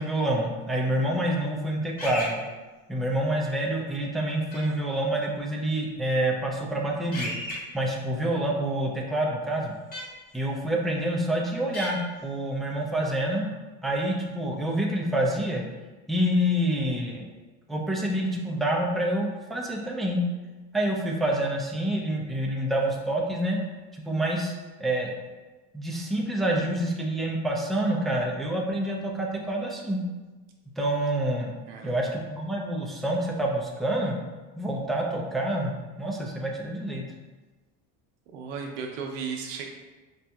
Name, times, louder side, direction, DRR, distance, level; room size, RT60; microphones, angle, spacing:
voice 1, 0.0-2.4 2.9-7.3 7.7-9.7 10.3-13.5 13.8-15.6 16.1-17.3 17.7-20.2 20.7-23.6 23.9-24.5 24.8-25.1 25.7-30.0 30.8-31.5 31.8-34.2 34.6-35.7 36.0-37.0, right 1 dB, ahead, -2 dB, 0.4 m, -27 dB
sound 1, 2.0-2.3 4.5-4.6 7.1-7.5 9.9-10.0 11.7-11.9, left 1 dB, 25° left, 1.2 m, -33 dB
voice 2, 31.7-32.1 38.3-39.6, right 5 dB, 90° right, 2 dB, 0.7 m, -35 dB
5.1 x 2.7 x 2.3 m, 1.2 s
supercardioid pair, 115°, 35 cm